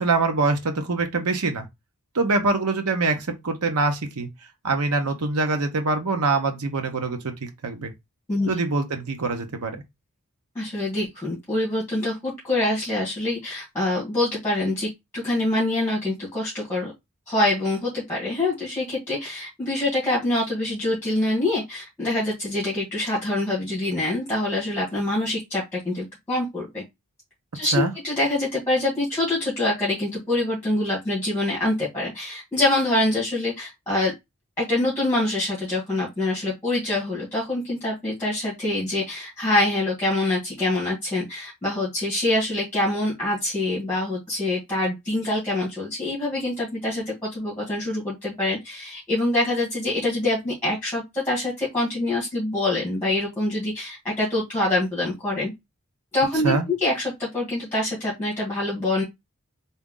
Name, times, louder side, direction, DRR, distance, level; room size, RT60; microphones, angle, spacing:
voice 1, 0.0-1.7 2.1-4.3 4.6-7.9 8.5-9.8 27.7-27.9 56.4-56.7, right 3 dB, 85° right, 0.9 m, -24 dB
voice 2, 10.5-16.9 17.3-26.8 27.5-34.1 34.6-55.5 56.1-59.0, left 2 dB, 10° left, 1.7 m, -25 dB
3.6 x 2.7 x 3.7 m
head